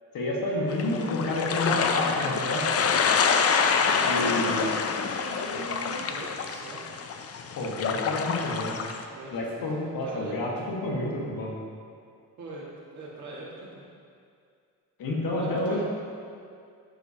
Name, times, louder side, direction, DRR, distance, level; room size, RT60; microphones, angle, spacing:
voice 1, 0.1-2.9 4.0-4.6 7.5-8.8 9.3-11.5 15.0-15.8, left 1 dB, 75° left, -3 dB, 1.6 m, -29 dB
sound 1, 0.7-9.0, left 6 dB, 45° left, 0.5 m, -27 dB
voice 2, 3.8-6.9 9.1-9.7 10.0-10.5 12.4-13.8 15.3-15.8, right 2 dB, 55° right, -6 dB, 1.9 m, -41 dB
12.0 x 4.9 x 2.8 m, 2.3 s
cardioid pair, 135°, 35 cm